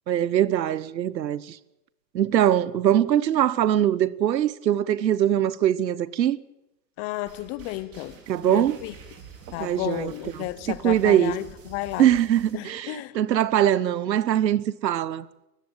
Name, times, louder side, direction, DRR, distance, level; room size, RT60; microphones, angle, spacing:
voice 1, 0.1-1.6 2.1-6.4 8.3-8.8 9.6-10.1 10.4-11.3 12.0-15.3, right 11 dB, 90° right, 1.0 m, -22 dB
voice 2, 7.0-8.2 8.5-8.9 9.5-12.1 12.5-13.2, left 17 dB, 30° left, 0.8 m, -32 dB
sound 1, 7.3-12.6, right 5 dB, 30° right, 4.7 m, -47 dB
19.5 x 15.0 x 9.0 m
hypercardioid pair, 135°, 50 cm